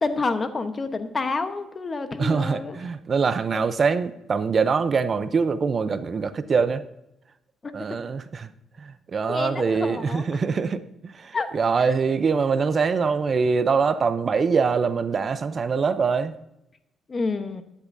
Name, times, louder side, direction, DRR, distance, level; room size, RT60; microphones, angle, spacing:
voice 1, 0.0-2.8 3.5-3.6 7.6-7.7 9.3-10.2 11.3-11.5 17.1-17.6, left 3 dB, 35° left, 9 dB, 1.0 m, -28 dB
voice 2, 2.2-6.8 7.7-8.5 8.8-16.4, right 5 dB, 45° right, 12 dB, 0.6 m, -24 dB
12.0 x 10.0 x 2.7 m, 0.85 s
cardioid pair, 90°, 0 cm